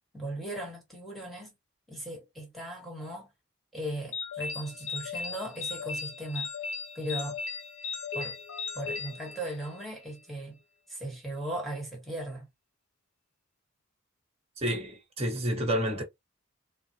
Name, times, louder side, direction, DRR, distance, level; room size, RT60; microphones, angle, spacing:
voice 1, 0.1-1.5 1.9-3.3 3.7-6.5 6.9-7.4 8.1-8.4 8.7-10.6 10.9-12.5, right 1 dB, ahead, 1.3 m, -37 dB
sound 1, 4.1-9.9, left 5 dB, 85° left, 1.0 m, -37 dB
voice 2, 14.6-16.0, equal, 30° right, 1.3 m, -29 dB
4.0 x 2.0 x 2.8 m
head